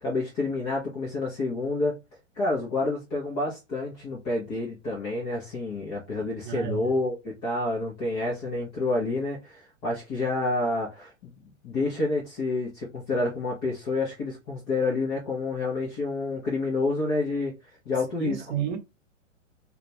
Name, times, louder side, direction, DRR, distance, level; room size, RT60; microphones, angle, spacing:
voice 1, 0.0-2.0 2.4-11.3 11.6-17.5 17.9-18.4, left 2 dB, 15° left, 0.3 m, -28 dB
voice 2, 6.4-6.9 18.2-18.8, right 10 dB, 40° right, 0.7 m, -31 dB
2.2 x 2.1 x 2.7 m
figure-of-eight pair, 100°, 38 cm